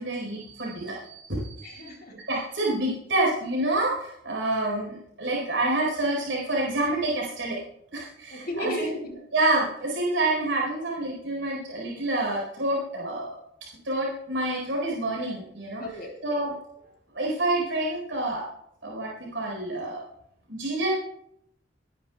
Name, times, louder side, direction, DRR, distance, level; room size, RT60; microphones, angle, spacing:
voice 1, 0.0-1.8 2.1-7.6 7.9-9.0 9.3-13.3 13.8-15.8 16.2-16.5 17.1-18.5 18.8-20.0 20.5-20.9, right 2 dB, 75° right, -3 dB, 4.5 m, -28 dB
voice 2, 1.6-2.2 8.3-9.2 15.8-16.2, right 1 dB, 55° left, 1 dB, 3.6 m, -34 dB
26.0 x 11.0 x 2.4 m, 0.75 s
head